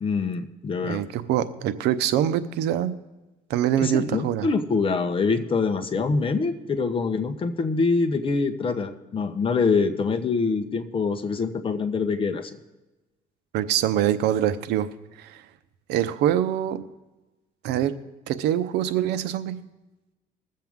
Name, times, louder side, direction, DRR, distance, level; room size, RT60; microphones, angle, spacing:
voice 1, 0.0-1.0 3.8-12.5, left 4 dB, 30° left, 6 dB, 1.1 m, -25 dB
voice 2, 0.8-2.9 3.5-4.5 13.5-14.9 15.2-15.4 15.9-16.8 17.6-17.9 18.3-19.5, right 11 dB, 85° right, 12 dB, 0.7 m, -24 dB
21.5 x 7.6 x 3.6 m, 1.1 s
cardioid pair, 110°, 17 cm